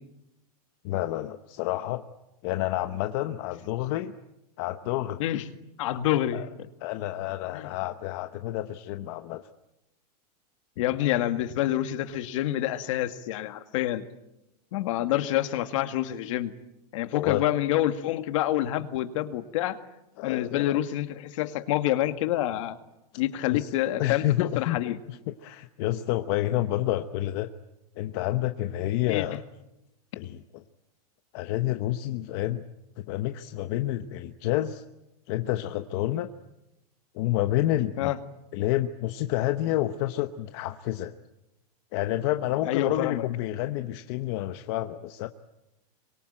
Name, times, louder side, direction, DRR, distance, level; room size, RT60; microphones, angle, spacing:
voice 1, 0.8-2.0 2.4-4.1 4.6-5.2 6.3-6.5 6.8-9.5 17.1-17.4 20.2-20.8 23.5-23.7 24.0-24.8 25.1-27.5 28.0-29.4 30.2-30.4 31.3-32.6 33.0-34.8 35.3-36.3 37.1-38.1 38.5-41.2 41.9-45.3, left 14 dB, 40° left, 9 dB, 1.0 m, -29 dB
voice 2, 5.8-6.7 7.5-7.7 10.8-14.0 14.7-16.5 16.9-19.8 20.2-22.8 23.1-24.3 24.6-25.0 29.1-29.2 38.0-38.2 42.6-43.3, left 13 dB, 55° left, 9 dB, 2.0 m, -27 dB
27.0 x 24.0 x 8.9 m, 0.91 s
supercardioid pair, 170°, 20 cm